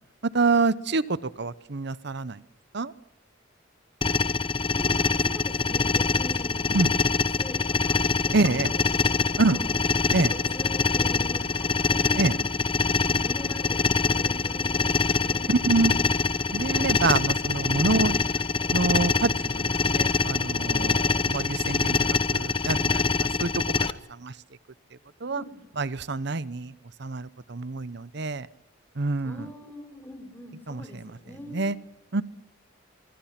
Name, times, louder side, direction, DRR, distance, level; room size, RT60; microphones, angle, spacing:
voice 1, 0.3-2.4 2.7-2.9 6.7-6.9 8.3-8.7 9.4-9.6 10.1-10.3 12.2-12.3 15.5-15.9 16.5-18.2 18.7-22.0 22.3-23.5 24.1-24.3 25.2-25.4 25.8-26.7 27.0-28.5 29.0-29.5 30.7-30.8 31.5-31.8 32.1-32.2, right 3 dB, 60° right, 17 dB, 0.9 m, -26 dB
sound 1, 4.0-23.9, left 4 dB, 25° left, 0.8 m, -25 dB
voice 2, 4.7-6.8 7.2-9.7 10.3-12.4 13.0-15.6 25.3-25.6 29.2-31.7, left 1 dB, 10° left, 6 dB, 4.5 m, -42 dB
sound 2, 9.0-22.2, right 1 dB, 15° right, 2.4 m, -48 dB
25.5 x 25.0 x 6.0 m, 0.87 s
head